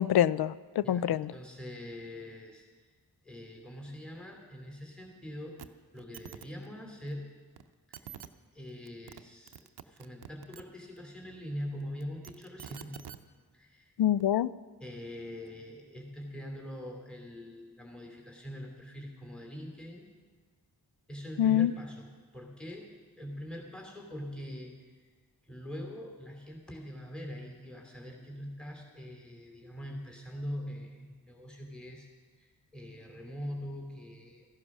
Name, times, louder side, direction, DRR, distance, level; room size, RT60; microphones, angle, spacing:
voice 1, 0.0-1.3 14.0-14.5 21.4-21.7, left 11 dB, 65° left, 19 dB, 0.5 m, -25 dB
voice 2, 0.8-2.9 3.2-7.3 7.9-8.3 8.5-9.5 9.8-13.0 13.5-13.9 14.8-20.0 21.1-22.9 23.2-25.1 25.4-34.5, equal, ahead, 1 dB, 2.9 m, -43 dB
sound 1, 5.6-5.7 6.0-6.5 7.6-7.7 7.9-8.3 8.9-9.2 9.5-10.6 12.0-13.2 14.2-14.3, right 9 dB, 70° right, 0.7 m, -46 dB
14.5 x 11.0 x 6.0 m, 1.5 s
cardioid pair, 45°, 40 cm